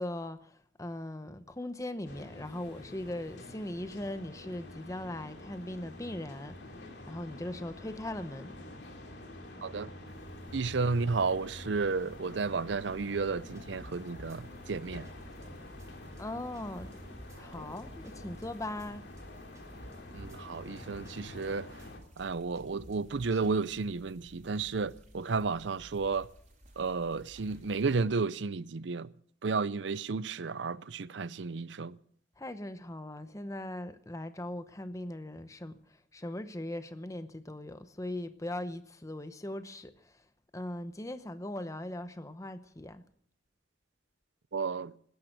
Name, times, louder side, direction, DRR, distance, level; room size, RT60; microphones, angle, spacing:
voice 1, 0.0-6.6 7.1-8.5 16.2-16.9 17.3-19.1 32.4-40.2 40.5-43.0, left 1 dB, 15° left, 0.8 m, -39 dB
sound 1, 2.1-22.0, left 1 dB, 60° left, 3.0 m, -47 dB
sound 2, 10.1-28.0, equal, 40° right, 4.1 m, -56 dB
voice 2, 10.5-15.1 20.1-21.7 22.2-26.3 26.8-29.1 29.4-31.9 44.5-44.9, right 4 dB, 65° right, 0.6 m, -32 dB
sound 3, 13.5-14.4 14.7-15.1 15.4-15.5 15.8-15.9 16.2-16.3 16.5-17.4 17.8-18.1 18.4-18.5 18.8-18.9 19.2-19.3 19.5-20.4 20.8-21.1 21.4-21.5 21.8-21.9 22.2-22.3 22.5-23.5, equal, 15° right, 2.5 m, -51 dB
19.0 x 10.5 x 6.5 m
head